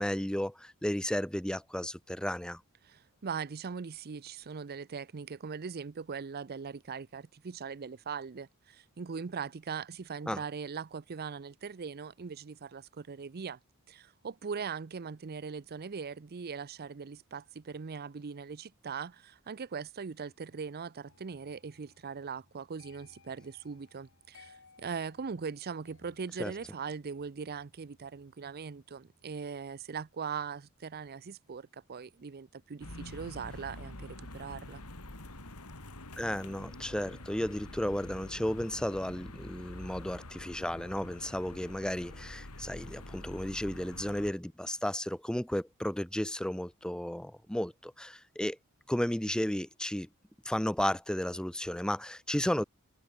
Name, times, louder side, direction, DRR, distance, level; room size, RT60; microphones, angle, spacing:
voice 1, 0.0-2.6 10.3-10.4 26.4-26.5 36.2-48.6 48.9-50.1 50.4-52.6, left 1 dB, 5° left, 0.6 m, -33 dB
voice 2, 2.8-13.6 13.9-34.8, right 6 dB, 45° right, 0.5 m, -40 dB
sound 1, 21.1-32.0 32.3-32.7, left 4 dB, 60° left, 5.2 m, -64 dB
sound 2, 32.8-44.3, left 1 dB, 85° left, 4.3 m, -46 dB
head